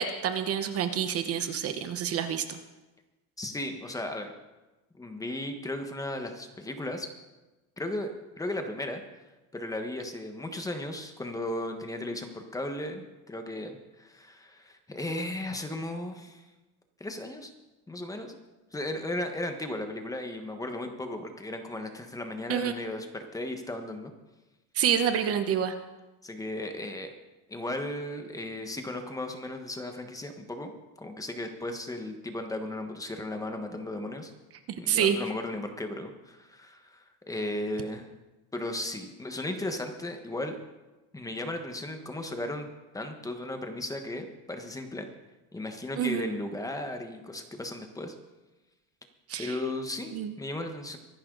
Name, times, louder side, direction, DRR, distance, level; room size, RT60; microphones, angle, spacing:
voice 1, 0.0-2.6 22.5-22.7 24.7-25.7 34.9-35.2 46.0-46.3 49.3-49.5 50.1-50.3, right 8 dB, 45° right, 9 dB, 1.1 m, -27 dB
voice 2, 3.4-4.3 4.9-7.1 7.8-9.0 9.5-16.4 17.0-17.5 17.9-18.3 18.7-24.1 26.2-27.1 27.5-30.7 31.0-34.3 34.8-38.1 38.5-40.6 41.1-42.7 42.9-45.0 45.5-48.1 49.4-51.0, left 1 dB, 10° left, 5 dB, 1.4 m, -35 dB
23.5 x 11.0 x 4.0 m, 1.1 s
cardioid pair, 145°, 33 cm